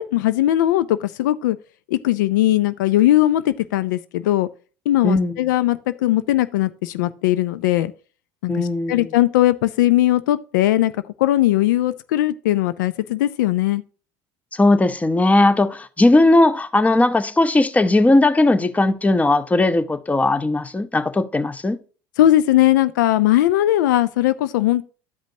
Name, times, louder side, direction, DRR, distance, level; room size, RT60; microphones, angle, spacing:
voice 1, 0.0-1.6 1.9-4.5 4.9-7.9 8.4-13.8 22.2-24.8, left 14 dB, 80° left, 0.4 m, -19 dB
voice 2, 5.0-5.4 8.5-9.1 14.5-21.8, left 2 dB, 15° left, 0.8 m, -17 dB
12.0 x 5.1 x 2.7 m
hypercardioid pair, 75°, 10 cm